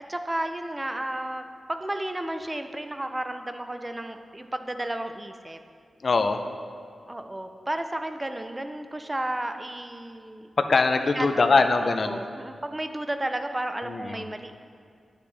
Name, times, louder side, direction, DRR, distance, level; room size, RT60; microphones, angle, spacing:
voice 1, 0.1-5.6 7.1-10.5 11.1-14.5, right 1 dB, 15° right, 7 dB, 0.4 m, -33 dB
voice 2, 6.0-6.4 10.6-12.2 13.8-14.2, left 3 dB, 50° left, 8 dB, 0.4 m, -22 dB
8.7 x 5.1 x 3.3 m, 2.2 s
wide cardioid pair, 120°, 0 cm